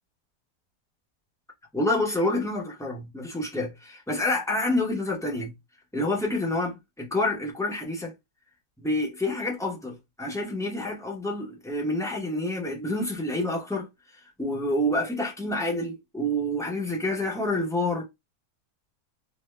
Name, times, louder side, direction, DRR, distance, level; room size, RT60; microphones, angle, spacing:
voice 1, 1.7-5.5 5.9-8.1 8.8-13.9 14.4-18.1, left 1 dB, 5° left, 0.4 m, -28 dB
3.5 x 2.1 x 3.2 m
omnidirectional pair, 1.7 m